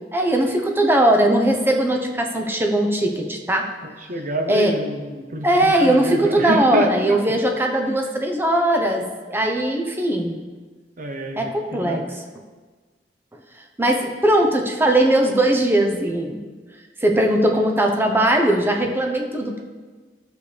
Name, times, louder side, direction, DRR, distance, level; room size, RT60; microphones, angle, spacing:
voice 1, 0.1-3.7 4.5-4.7 5.4-10.3 11.3-12.0 13.8-16.4 17.0-19.6, right 1 dB, 10° right, 2 dB, 0.8 m, -19 dB
voice 2, 3.8-7.2 11.0-11.5 11.8-12.0, right 1 dB, 45° right, 4 dB, 0.9 m, -26 dB
12.0 x 6.9 x 3.4 m, 1.4 s
head